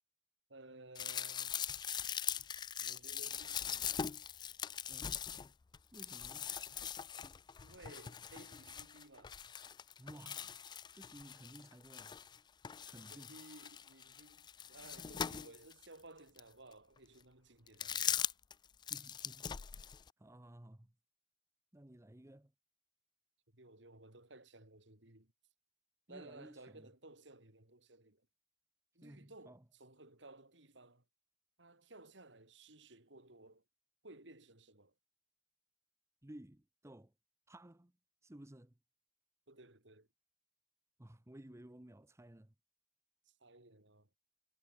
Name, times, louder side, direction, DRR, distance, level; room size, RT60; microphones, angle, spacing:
voice 1, 0.5-1.6 2.8-4.0 7.6-9.4 13.1-18.3 23.5-25.3 26.1-28.2 28.9-31.0 31.6-33.6 34.0-34.9 39.5-40.1 43.3-44.1, right 2 dB, 70° right, 4.3 m, -57 dB
sound 1, 1.0-12.4 12.6-15.9 16.4-16.5 17.7-18.5 18.8-20.1, left 8 dB, 25° left, 0.3 m, -41 dB
voice 2, 4.9-5.3 5.9-6.5 10.0-10.6 10.9-12.1 12.9-13.4 18.9-20.9 21.7-22.5 26.1-26.9 29.0-29.7 36.2-37.1 37.5-37.9 38.2-38.8 41.0-42.5, right 1 dB, 15° right, 0.9 m, -56 dB
head